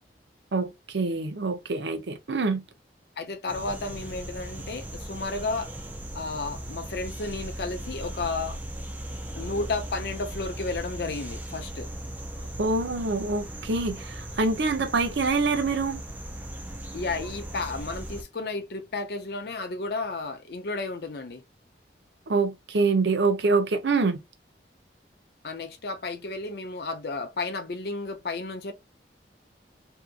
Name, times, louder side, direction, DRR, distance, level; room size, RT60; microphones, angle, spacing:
voice 1, 0.5-2.6 12.6-16.0 22.3-24.2, right 3 dB, 80° right, 0.6 m, -25 dB
voice 2, 3.2-5.7 6.1-8.6 9.3-11.9 16.9-21.4 25.4-28.7, left 3 dB, 60° left, 0.5 m, -32 dB
sound 1, 3.5-18.2, right 1 dB, 10° right, 0.4 m, -38 dB
2.7 x 2.4 x 2.3 m
head